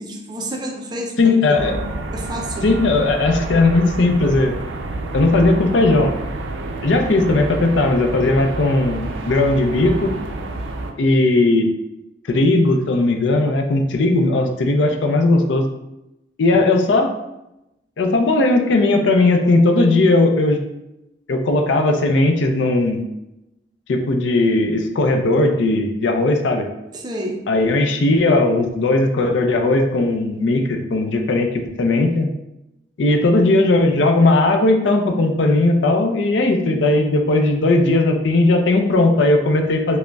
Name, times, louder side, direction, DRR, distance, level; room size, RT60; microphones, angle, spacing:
voice 1, 0.0-1.8 2.1-2.7 26.9-27.5, right 1 dB, 25° right, 2 dB, 0.4 m, -29 dB
voice 2, 1.2-1.8 2.6-4.5 5.1-6.2 6.8-10.2 11.0-11.7 12.3-15.6 16.4-17.1 18.0-20.6 21.3-23.0 23.9-26.7 27.5-32.3 33.0-40.0, left 2 dB, 75° left, 5 dB, 0.4 m, -17 dB
sound 1, 1.5-10.9, right 2 dB, 90° right, 0.4 m, -28 dB
4.9 x 2.1 x 2.3 m, 0.90 s
head